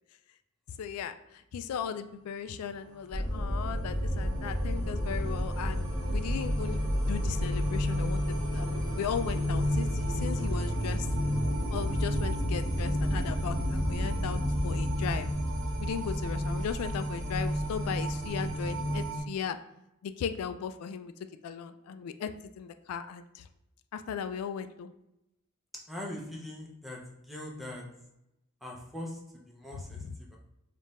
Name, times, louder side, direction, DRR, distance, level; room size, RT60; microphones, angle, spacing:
voice 1, 0.8-6.8 7.1-11.1 11.7-15.3 15.8-19.6 20.0-21.1 21.4-22.3 22.6-23.5 23.9-24.9 29.7-30.2, left 7 dB, 85° left, 11 dB, 0.3 m, -37 dB
sound 1, 3.0-19.2, equal, 65° right, 0.8 m, -35 dB
sound 2, 3.1-19.0, equal, 45° left, 1.3 m, -32 dB
voice 2, 25.9-27.8 28.6-30.0 30.3-30.4, left 1 dB, ahead, -2 dB, 0.7 m, -41 dB
3.6 x 2.5 x 4.1 m, 0.87 s
head